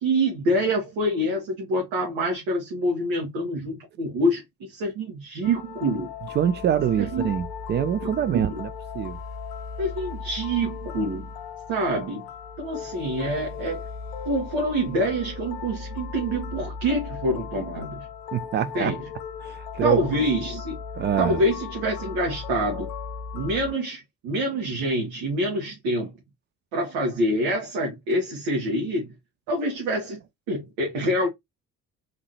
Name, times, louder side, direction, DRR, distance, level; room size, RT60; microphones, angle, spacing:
voice 1, 0.0-6.1 7.0-7.3 8.1-8.2 8.5-8.6 9.8-11.3 11.7-12.2 12.6-13.8 14.2-18.0 18.6-19.0 19.8-20.8 21.2-22.9 23.3-26.1 26.7-29.1 29.5-30.2 30.5-31.3, right 1 dB, 60° right, 1.4 m, -26 dB
sound 1, 5.4-23.7, left 6 dB, 60° left, 0.8 m, -37 dB
voice 2, 6.3-9.2 18.3-19.0 19.4-20.0 21.0-21.4, right 9 dB, 25° right, 0.3 m, -25 dB
3.7 x 3.2 x 3.0 m
figure-of-eight pair, 40°, 49 cm